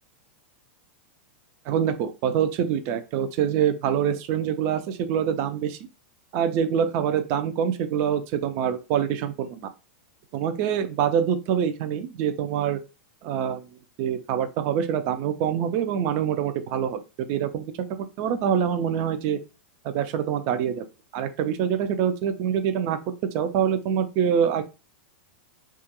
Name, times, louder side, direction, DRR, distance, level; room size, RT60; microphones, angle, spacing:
voice 1, 1.7-5.8 6.3-9.7 10.3-12.8 13.2-13.6 14.0-17.7 18.0-19.4 19.8-20.8 21.1-24.6, right 8 dB, 45° right, 8 dB, 0.4 m, -25 dB
2.3 x 2.2 x 2.8 m, 0.28 s
hypercardioid pair, 125°, 6 cm